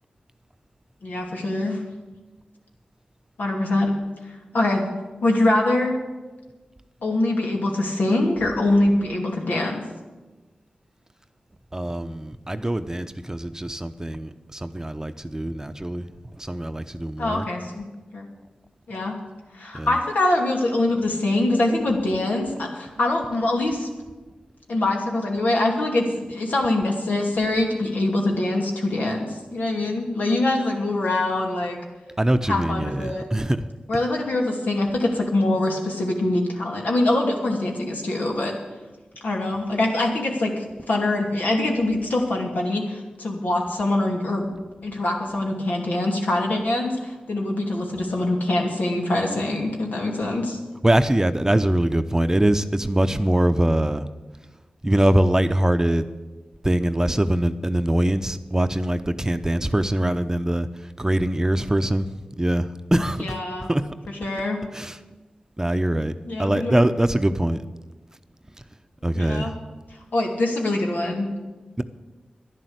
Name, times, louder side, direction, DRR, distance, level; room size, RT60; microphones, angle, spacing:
voice 1, 1.0-1.8 3.4-3.9 4.5-4.8 5.2-5.9 7.0-9.8 17.2-17.8 18.1-18.2 18.9-19.1 19.5-23.9 24.7-31.8 32.5-33.2 33.9-38.5 39.2-44.5 44.8-50.6 63.2-63.7 64.2-64.6 66.2-66.9 69.1-69.5 70.1-71.3, left 2 dB, 75° left, 0 dB, 2.8 m, -24 dB
voice 2, 11.7-16.0 16.4-17.5 19.7-19.9 32.2-33.6 50.8-54.1 54.8-56.1 56.6-60.7 61.0-62.1 62.4-63.4 63.7-63.9 64.7-65.0 65.6-66.1 66.4-67.6 69.0-69.5 71.8-71.9, right 1 dB, 20° right, 10 dB, 0.8 m, -22 dB
11.0 x 11.0 x 8.1 m, 1.2 s
cardioid pair, 40°, 3 cm